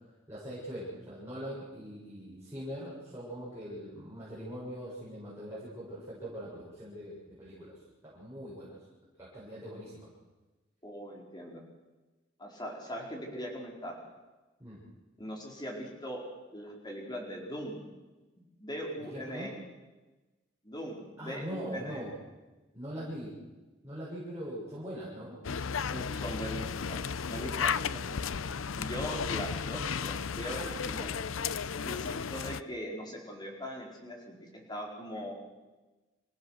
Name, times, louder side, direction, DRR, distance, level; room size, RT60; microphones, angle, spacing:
voice 1, 0.3-7.8 8.0-8.8 9.2-10.1 14.6-14.8 19.0-19.5 21.2-22.2 22.7-23.4 23.8-25.4 31.8-32.0, equal, 15° right, -9 dB, 7.1 m, -42 dB
voice 2, 10.8-11.6 12.4-13.9 15.2-16.2 16.5-17.8 18.6-19.5 20.6-22.0 25.9-27.0 27.3-28.2 28.7-31.1 31.8-35.3, equal, 20° left, -1 dB, 4.6 m, -40 dB
sound 1, 25.4-32.6, left 6 dB, 80° left, 0.6 m, -34 dB
26.5 x 16.5 x 6.5 m, 1.2 s
head